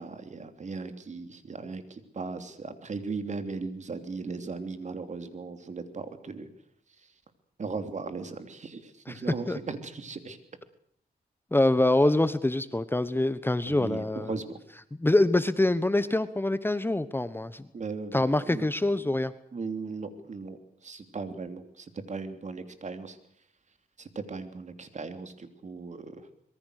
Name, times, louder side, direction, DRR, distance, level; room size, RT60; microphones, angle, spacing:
voice 1, 0.0-6.5 7.6-10.4 13.7-14.6 17.7-18.7 19.5-20.6 20.8-23.2 24.0-26.2, right 4 dB, 45° right, 9 dB, 3.2 m, -37 dB
voice 2, 9.1-9.6 11.5-14.4 14.9-17.6 18.1-19.3, left 2 dB, 15° left, 14 dB, 1.1 m, -25 dB
25.5 x 22.5 x 6.6 m, 0.66 s
cardioid pair, 95°, 17 cm